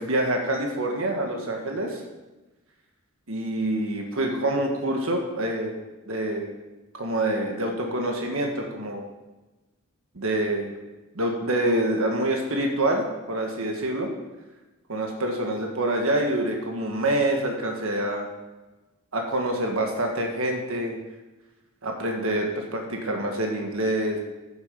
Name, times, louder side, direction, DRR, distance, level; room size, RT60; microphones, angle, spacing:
voice 1, 0.0-2.0 3.3-5.8 6.1-6.5 6.9-9.1 10.1-10.7 11.1-14.1 14.9-18.3 19.1-21.0 21.8-24.2, right 1 dB, 70° right, 2 dB, 1.5 m, -26 dB
11.0 x 8.5 x 5.2 m, 1.1 s
head